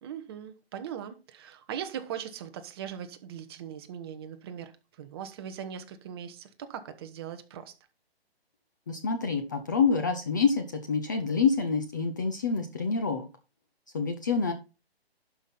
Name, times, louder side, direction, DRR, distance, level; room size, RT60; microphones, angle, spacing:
voice 1, 0.0-4.7 5.0-7.7, right 9 dB, 25° right, 0.9 m, -40 dB
voice 2, 8.9-13.3 13.9-14.5, left 5 dB, 20° left, 0.5 m, -27 dB
11.5 x 5.6 x 4.2 m
hypercardioid pair, 155°, 32 cm